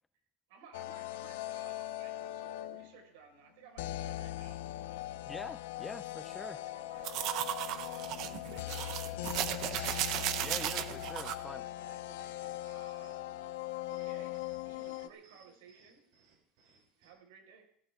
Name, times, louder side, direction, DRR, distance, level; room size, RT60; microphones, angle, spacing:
voice 1, 0.5-4.6 6.3-10.0 11.5-13.2 13.5-13.6 13.9-16.0 17.0-17.7, right 7 dB, 85° right, 3 dB, 5.0 m, -58 dB
sound 1, 0.7-3.0 3.8-15.1, left 15 dB, 90° left, 0.7 m, -40 dB
voice 2, 5.3-6.6 10.4-11.7, left 2 dB, 5° left, 12 dB, 0.5 m, -45 dB
sound 2, 7.0-11.4, right 12 dB, 45° right, 0.9 m, -35 dB
sound 3, 11.9-17.1, right 4 dB, 65° right, 7.0 m, -66 dB
17.5 x 15.0 x 3.7 m, 0.66 s
cardioid pair, 170°, 0 cm